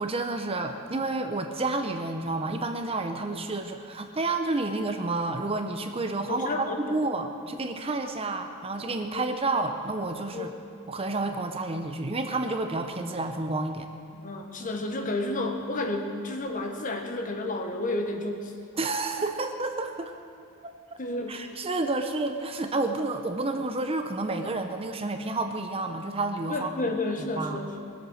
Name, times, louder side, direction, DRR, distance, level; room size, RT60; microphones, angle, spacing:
voice 1, 0.0-10.5 10.9-13.9 18.8-20.1 20.6-20.7 21.3-26.7 27.4-27.6, right 2 dB, 25° right, 6 dB, 0.7 m, -30 dB
voice 2, 6.3-6.9 9.1-9.3 10.3-10.5 14.1-18.5 21.0-21.4 26.5-27.9, left 2 dB, 40° left, 4 dB, 1.3 m, -31 dB
20.5 x 8.1 x 6.4 m, 2.3 s
head